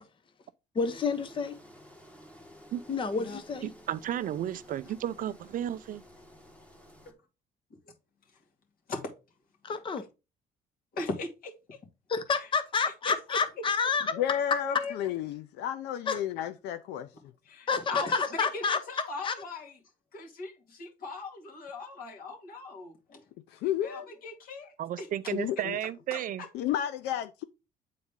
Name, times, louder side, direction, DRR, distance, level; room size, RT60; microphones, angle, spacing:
voice 1, 0.7-1.5 2.9-3.7 9.6-10.0 12.1-14.1 16.1-16.2 17.7-18.8 19.2-19.3, left 5 dB, 30° left, 0.8 m, -29 dB
Engine, 0.8-7.1, equal, 10° left, 1.2 m, -53 dB
voice 2, 3.6-6.0 24.8-26.4, right 11 dB, 55° right, 0.5 m, -33 dB
voice 3, 10.9-11.8 12.4-12.5 13.1-13.4 14.1-14.9 17.4-19.7 20.1-23.2 23.6-25.1 26.1-26.5, left 3 dB, 60° left, 2.3 m, -39 dB
voice 4, 14.2-17.1 23.5-24.1 25.3-25.8 26.5-27.4, left 11 dB, 85° left, 0.5 m, -32 dB
8.5 x 4.1 x 3.6 m
cardioid pair, 110°, 17 cm